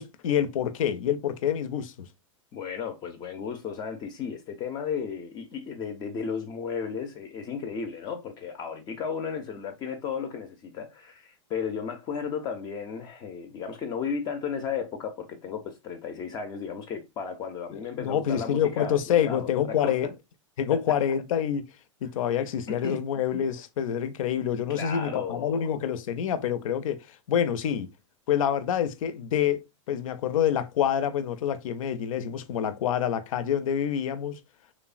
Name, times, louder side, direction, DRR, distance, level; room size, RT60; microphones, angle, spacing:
voice 1, 0.0-2.1 17.7-20.1 20.6-21.7 22.0-27.9 28.3-34.4, left 9 dB, 85° left, 0.4 m, -27 dB
voice 2, 2.5-20.0 20.7-20.8 22.7-23.0 24.7-25.7, left 6 dB, 25° left, 0.4 m, -34 dB
3.1 x 2.0 x 2.3 m
supercardioid pair, 145°, 17 cm